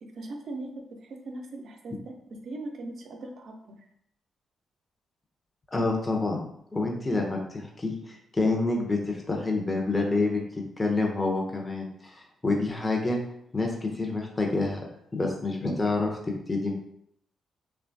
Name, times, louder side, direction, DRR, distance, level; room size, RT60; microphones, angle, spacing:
voice 1, 0.0-3.8, right 2 dB, 60° right, 4 dB, 0.5 m, -40 dB
voice 2, 5.7-6.4 6.7-10.4 10.8-13.2 13.5-14.8 15.1-16.1 16.5-16.7, left 3 dB, 25° left, 0 dB, 0.6 m, -27 dB
2.9 x 2.2 x 2.6 m, 0.72 s
hypercardioid pair, 40°, 0 cm